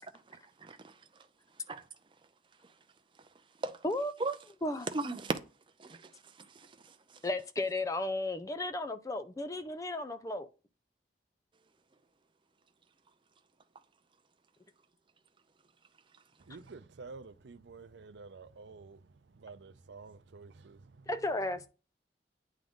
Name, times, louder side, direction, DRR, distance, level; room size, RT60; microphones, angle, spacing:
voice 1, 0.3-1.0 1.7-1.8 3.6-3.8 4.2-4.3 4.9-5.4 5.8-6.1 6.5-6.9, right 3 dB, 30° right, 0.6 m, -37 dB
voice 2, 7.2-10.5 21.1-21.7, left 2 dB, 20° left, 0.4 m, -34 dB
voice 3, 16.4-21.2, right 4 dB, 90° right, 0.5 m, -50 dB
9.0 x 3.7 x 3.6 m
head